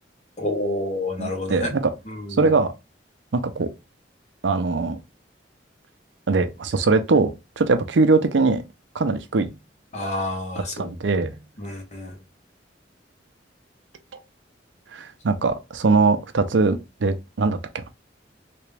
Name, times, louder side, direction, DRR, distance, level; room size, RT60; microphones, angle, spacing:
voice 1, 0.4-1.8 2.1-2.5 9.9-10.9 11.6-12.2, left 1 dB, 40° left, 1.2 m, -29 dB
voice 2, 1.2-1.9 2.4-2.7 3.3-3.7 4.4-5.0 6.3-8.6 8.9-9.6 10.6-11.4 14.9-17.9, right 3 dB, 85° right, 0.6 m, -21 dB
3.5 x 2.9 x 3.3 m
head